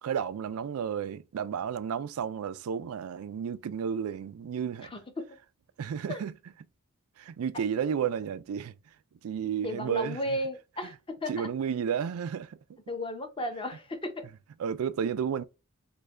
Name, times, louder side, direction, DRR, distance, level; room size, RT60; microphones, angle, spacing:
voice 1, 0.0-4.9 5.8-6.3 7.2-8.7 9.2-10.2 11.3-12.5 14.6-15.4, right 7 dB, 70° right, 0.3 m, -32 dB
voice 2, 4.8-5.3 6.1-6.2 9.6-11.5 12.9-14.3, left 1 dB, 25° left, 0.7 m, -34 dB
3.2 x 2.2 x 3.5 m
head